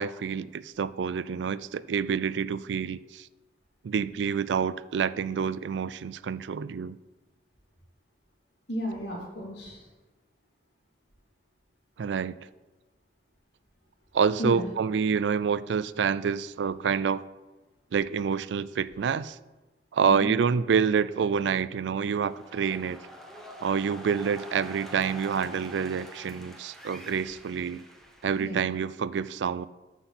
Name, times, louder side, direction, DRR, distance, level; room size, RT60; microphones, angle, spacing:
voice 1, 0.0-3.3 3.8-7.0 12.0-12.4 14.1-17.2 17.9-19.4 19.9-23.0 23.6-27.8 28.2-29.7, right 6 dB, 85° right, 17 dB, 0.4 m, -27 dB
voice 2, 8.7-9.8 14.4-14.7 20.0-20.3 28.4-28.6, equal, 80° left, -3 dB, 3.1 m, -33 dB
sound 1, 22.0-28.9, equal, ahead, 1.1 m, -46 dB
13.5 x 5.9 x 4.2 m, 1.1 s
head